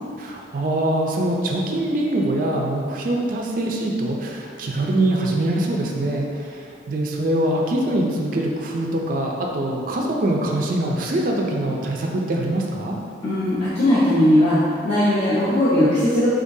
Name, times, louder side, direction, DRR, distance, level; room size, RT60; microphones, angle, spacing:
voice 1, 0.2-12.9, right 1 dB, 45° right, -1 dB, 0.3 m, -23 dB
voice 2, 13.2-14.6 14.8-16.3, left 1 dB, 35° left, -12 dB, 0.7 m, -18 dB
3.6 x 3.3 x 2.6 m, 2.3 s
head